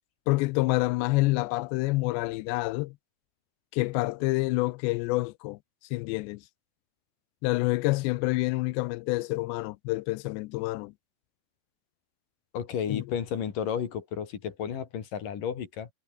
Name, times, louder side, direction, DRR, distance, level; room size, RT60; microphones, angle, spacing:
voice 1, 0.3-3.0 3.7-5.6 5.9-6.4 7.4-10.9 12.9-13.0, left 22 dB, 90° left, 2.8 m, -27 dB
voice 2, 12.5-15.9, left 8 dB, 55° left, 3.8 m, -32 dB
omnidirectional pair, 5.0 m